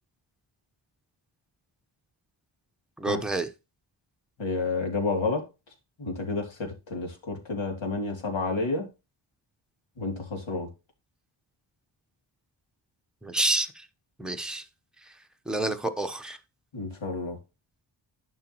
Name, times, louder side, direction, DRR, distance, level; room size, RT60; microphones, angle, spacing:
voice 1, 3.0-3.5 13.2-13.9 14.2-14.6 15.5-16.4, right 2 dB, ahead, 0.9 m, -28 dB
voice 2, 4.4-5.4 6.0-8.9 10.0-10.7 16.7-17.4, left 3 dB, 75° left, 3.1 m, -30 dB
11.0 x 5.5 x 3.0 m
wide cardioid pair, 120°, 47 cm